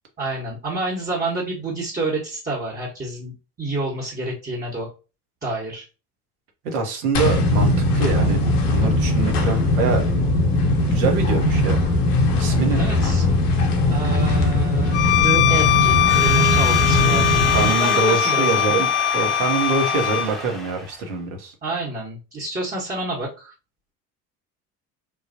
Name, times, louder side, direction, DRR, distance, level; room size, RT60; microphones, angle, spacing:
voice 1, 0.2-4.9 5.4-5.9 12.8-13.2 13.9-18.8 21.6-23.5, right 2 dB, 20° right, -5 dB, 1.1 m, -28 dB
voice 2, 6.7-8.4 8.7-10.0 10.9-11.8 12.4-12.9 16.9-21.5, right 4 dB, 70° right, 3 dB, 0.9 m, -25 dB
sound 1, 7.1-17.7, left 1 dB, 70° left, 0.7 m, -20 dB
Bowed string instrument, 14.9-20.3, left 12 dB, 30° left, 0.6 m, -20 dB
Crowd / Alarm, 15.5-21.1, left 1 dB, ahead, 0.7 m, -30 dB
3.2 x 2.3 x 2.6 m, 0.31 s
figure-of-eight pair, 60°, 46 cm